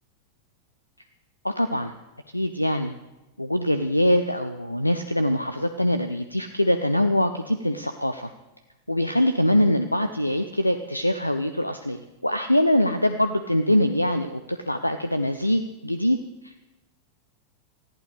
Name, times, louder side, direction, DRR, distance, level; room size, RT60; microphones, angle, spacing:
voice 1, 1.4-1.9 2.3-2.9 3.4-8.3 8.9-16.2 16.4-16.6, left 1 dB, 85° left, 10 dB, 0.5 m, -23 dB
19.5 x 14.5 x 3.4 m, 1.0 s
figure-of-eight pair, 90°, 0 cm